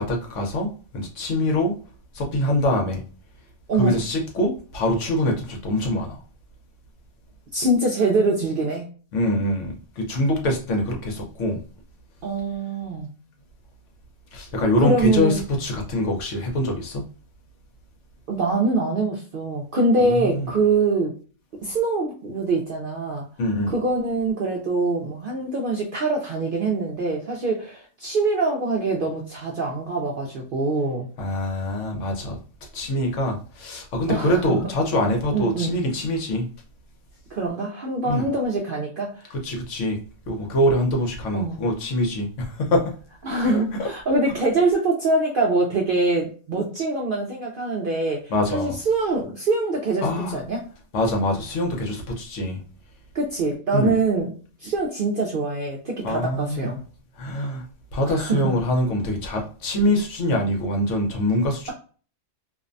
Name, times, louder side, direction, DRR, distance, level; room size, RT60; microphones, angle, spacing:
voice 1, 0.0-1.8 2.1-3.0 3.8-6.2 9.1-11.6 14.3-17.0 20.0-20.5 23.4-23.7 31.2-32.4 32.7-36.5 38.0-38.3 39.4-40.0 40.3-42.9 43.4-43.9 48.3-48.7 50.0-50.4 50.9-52.6 53.7-53.9 56.0-56.7 57.2-57.6 57.9-61.7, left 1 dB, 70° left, 2 dB, 1.0 m, -24 dB
voice 2, 7.5-8.9 12.2-13.1 14.8-15.4 18.3-21.1 21.6-23.2 23.7-31.1 34.1-34.6 35.3-35.8 37.3-39.1 41.3-41.6 43.2-50.6 53.1-54.3 54.6-56.8 58.1-58.5, right 3 dB, 60° right, -1 dB, 0.5 m, -24 dB
2.6 x 2.1 x 2.5 m, 0.39 s
omnidirectional pair, 1.4 m